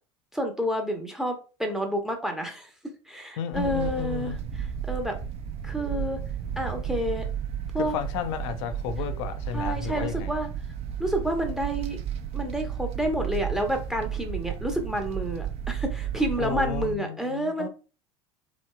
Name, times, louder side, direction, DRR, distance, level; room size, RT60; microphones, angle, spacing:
voice 1, 0.3-2.7 3.1-5.2 5.6-6.2 6.6-7.2 7.7-7.9 9.5-10.5 11.0-12.0 12.3-17.7, equal, 5° right, 0.7 m, -29 dB
voice 2, 3.4-4.4 7.8-10.3 16.4-17.7, left 8 dB, 70° left, 0.5 m, -32 dB
sound 1, 3.5-17.0, right 9 dB, 40° right, 0.5 m, -33 dB
3.0 x 2.7 x 2.2 m
hypercardioid pair, 75°, 16 cm